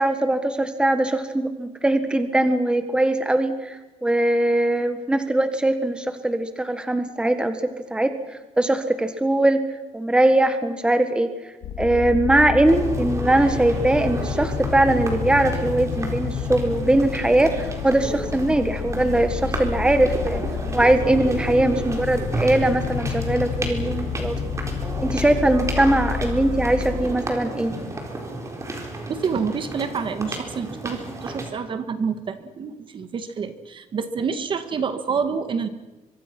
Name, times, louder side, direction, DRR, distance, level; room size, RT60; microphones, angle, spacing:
voice 1, 0.0-8.1 8.6-9.6 9.9-11.3 11.8-20.4 20.7-24.4 25.0-27.7, right 1 dB, 5° right, 9 dB, 1.6 m, -21 dB
sound 1, 11.6-27.2, left 7 dB, 75° left, 1.9 m, -30 dB
sound 2, 12.6-31.5, right 2 dB, 20° right, 4.2 m, -33 dB
voice 2, 29.1-35.7, right 6 dB, 40° right, 10 dB, 1.7 m, -28 dB
24.5 x 24.5 x 6.1 m, 1.1 s
cardioid pair, 150°, 13 cm